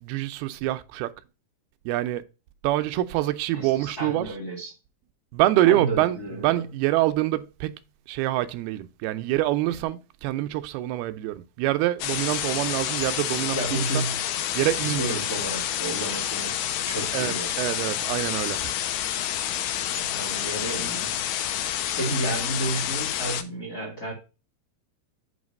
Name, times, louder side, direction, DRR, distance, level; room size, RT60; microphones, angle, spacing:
voice 1, 0.0-1.1 1.9-2.2 2.6-4.3 5.3-6.2 6.4-7.7 8.1-14.1 14.5-15.2 17.1-18.7, right 15 dB, 85° right, 2.5 m, -25 dB
voice 2, 3.5-4.7 5.6-6.6 13.5-14.2 14.8-16.6 16.9-17.5 20.0-21.2 22.0-24.1, right 2 dB, 35° left, 1.8 m, -32 dB
sound 1, 12.0-23.4, left 11 dB, 75° left, 2.4 m, -29 dB
8.0 x 3.2 x 5.2 m
omnidirectional pair, 4.5 m